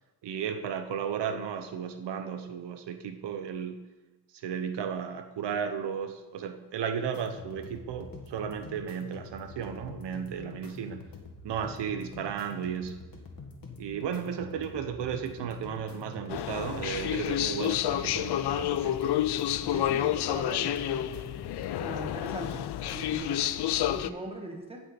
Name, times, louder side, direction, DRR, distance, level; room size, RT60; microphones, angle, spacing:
voice 1, 0.2-3.8 4.4-11.1 11.4-13.0 13.8-19.0, right 7 dB, 80° right, 8 dB, 0.8 m, -34 dB
sound 1, 7.1-23.1, left 4 dB, 55° left, 1.7 m, -46 dB
sound 2, 16.3-24.1, left 12 dB, 70° left, 0.5 m, -29 dB
voice 2, 19.7-21.3 21.8-24.8, right 2 dB, 15° right, 1 dB, 1.6 m, -41 dB
16.0 x 5.6 x 4.3 m, 1.2 s
cardioid pair, 120°, 41 cm